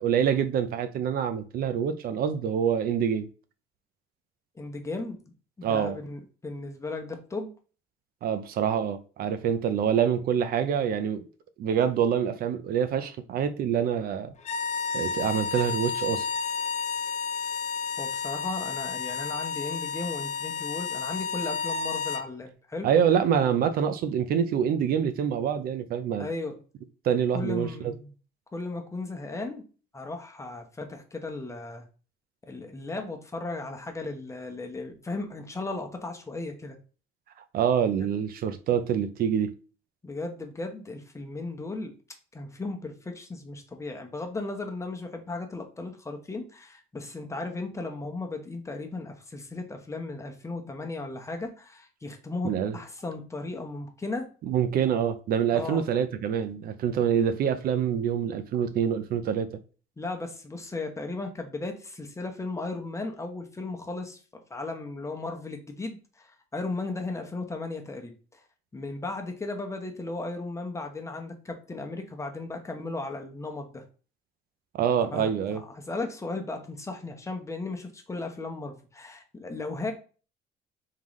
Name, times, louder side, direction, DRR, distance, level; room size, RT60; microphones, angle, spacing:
voice 1, 0.0-3.3 5.6-6.0 8.2-11.2 11.6-14.3 14.9-16.3 22.8-26.3 27.0-27.9 37.5-39.5 52.4-52.8 54.5-59.5 74.7-75.6, right 8 dB, 60° right, 0.5 m, -26 dB
voice 2, 4.6-5.2 5.6-7.5 18.0-22.9 26.2-26.6 27.3-28.1 28.5-29.6 29.9-31.8 32.5-36.8 38.0-38.1 40.0-41.9 42.3-54.3 55.5-55.8 60.0-64.2 64.5-68.4 68.7-73.8 75.0-79.9, left 3 dB, 15° left, 0.9 m, -36 dB
sound 1, 14.4-22.3, left 5 dB, 45° left, 0.5 m, -31 dB
3.7 x 3.6 x 3.1 m
cardioid pair, 110°, 17 cm